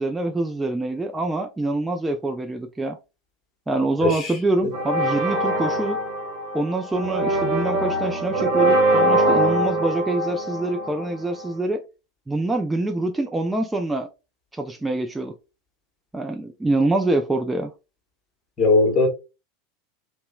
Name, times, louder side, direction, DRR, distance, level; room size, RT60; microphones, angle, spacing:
voice 1, 0.0-3.0 3.7-6.0 6.5-11.8 12.3-14.1 14.5-15.3 16.1-17.7, right 2 dB, 10° right, 0.3 m, -25 dB
voice 2, 4.0-4.3 18.6-19.1, left 3 dB, 30° left, 1.0 m, -18 dB
sound 1, 4.7-11.5, right 1 dB, 55° right, 0.8 m, -23 dB
2.9 x 2.0 x 2.3 m
figure-of-eight pair, 85°, 0 cm